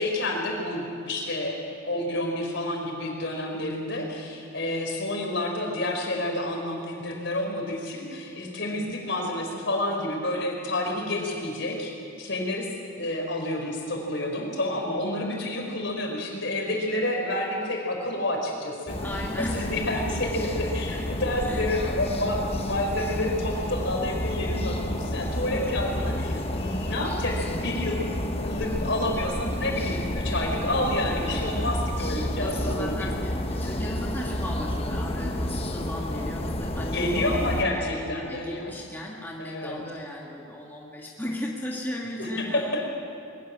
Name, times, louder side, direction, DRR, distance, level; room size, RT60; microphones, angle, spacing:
voice 1, 0.0-1.6 1.8-11.9 12.2-12.7 13.0-19.0 19.4-33.1 36.8-38.7 39.4-39.8 42.2-42.9, left 1 dB, 60° left, 1 dB, 4.4 m, -29 dB
voice 2, 8.6-8.9 11.1-11.4 14.9-15.2 19.0-19.9 21.5-21.7 25.5-26.1 31.2-31.8 32.2-42.9, left 1 dB, 10° left, -3 dB, 1.8 m, -37 dB
sound 1, 18.9-37.6, left 1 dB, 30° left, 1.1 m, -30 dB
21.5 x 14.5 x 9.8 m, 2.5 s
head